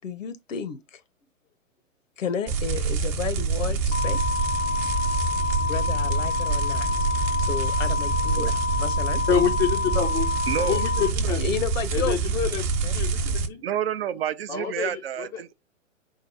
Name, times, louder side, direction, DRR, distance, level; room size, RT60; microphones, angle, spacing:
voice 1, 0.0-1.0 2.2-4.2 5.7-7.1 7.5-9.2 11.4-12.2 12.8-12.9, left 7 dB, 70° left, 0.9 m, -32 dB
sound 1, 2.5-13.5, right 4 dB, 25° right, 1.0 m, -26 dB
sound 2, 3.9-11.1, left 5 dB, 85° left, 1.1 m, -28 dB
voice 2, 9.3-10.4 10.7-11.5 11.9-12.7 12.9-13.6 14.5-15.4, left 7 dB, 10° left, 0.5 m, -27 dB
voice 3, 10.5-10.8 13.6-15.5, right 9 dB, 50° right, 0.5 m, -29 dB
4.6 x 2.0 x 4.6 m
hypercardioid pair, 130°, 40 cm